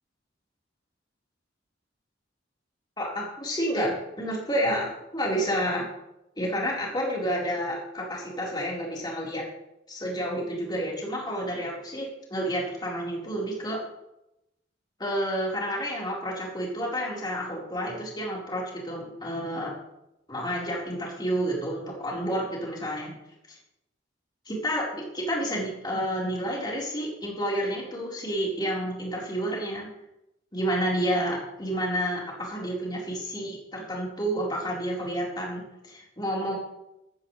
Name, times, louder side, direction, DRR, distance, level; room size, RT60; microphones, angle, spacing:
voice 1, 3.0-5.9 6.4-9.4 9.9-13.8 15.0-19.7 20.3-23.1 23.5-23.6 24.5-29.9 30.5-36.6, equal, 20° left, -4 dB, 4.3 m, -30 dB
14.0 x 13.5 x 3.3 m, 0.86 s
head